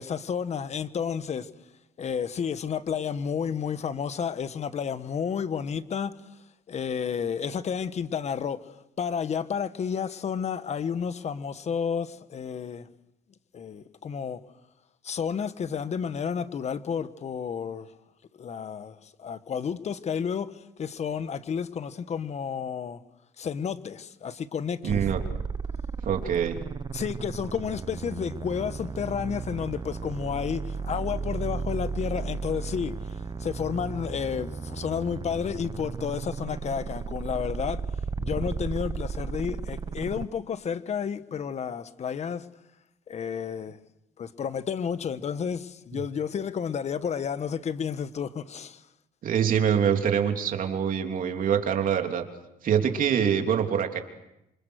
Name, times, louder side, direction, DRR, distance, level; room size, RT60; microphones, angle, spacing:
voice 1, 0.0-1.5 2.0-6.2 6.7-8.7 9.0-12.9 13.5-14.4 15.0-17.9 18.4-23.0 23.4-25.0 26.9-32.9 33.4-37.8 38.2-42.4 43.1-43.8 44.2-48.8, left 7 dB, 40° left, 1.3 m, -31 dB
voice 2, 24.8-25.3 26.0-26.6 49.2-52.3 52.6-54.0, right 8 dB, 55° right, 3.2 m, -25 dB
sound 1, 24.9-40.2, right 5 dB, 25° right, 0.9 m, -34 dB
28.0 x 25.5 x 6.5 m
cardioid pair, 110°, 17 cm